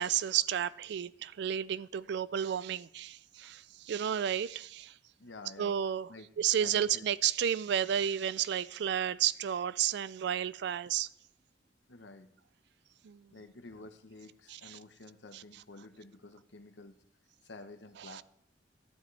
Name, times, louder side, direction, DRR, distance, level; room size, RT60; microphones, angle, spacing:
voice 1, 0.0-4.9 5.6-6.1 6.4-11.1 13.0-13.3 14.6-14.8 15.3-15.4 18.1-18.2, right 9 dB, 70° right, 0.3 m, -32 dB
voice 2, 5.2-5.8 6.1-6.3 6.6-7.1 11.9-12.3 13.3-17.0 17.4-18.2, left 2 dB, 80° left, 1.0 m, -50 dB
12.0 x 10.5 x 3.3 m
head